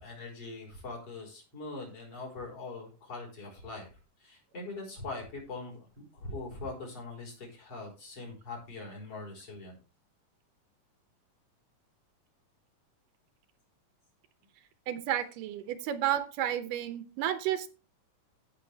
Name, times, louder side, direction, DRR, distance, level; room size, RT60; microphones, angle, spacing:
voice 1, 0.0-3.9 4.2-9.8, left 3 dB, 45° left, -2 dB, 5.5 m, -42 dB
voice 2, 14.9-17.7, right 11 dB, 85° right, 12 dB, 2.5 m, -31 dB
15.5 x 6.4 x 3.4 m, 0.32 s
omnidirectional pair, 3.7 m